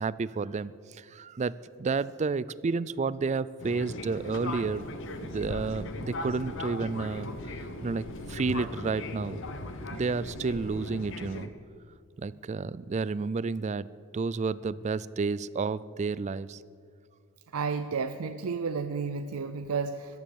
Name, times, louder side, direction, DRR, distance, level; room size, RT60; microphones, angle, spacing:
voice 1, 0.0-1.5 1.8-4.9 5.2-7.3 7.8-8.0 8.3-9.4 9.9-11.5 12.2-13.9 14.1-16.6, right 4 dB, 30° right, 18 dB, 0.3 m, -31 dB
Fixed-wing aircraft airplane, 3.6-11.5, left 2 dB, 60° left, 1.0 m, -38 dB
voice 2, 17.5-20.2, right 5 dB, 85° right, 9 dB, 0.6 m, -32 dB
14.0 x 12.5 x 7.1 m, 2.2 s
head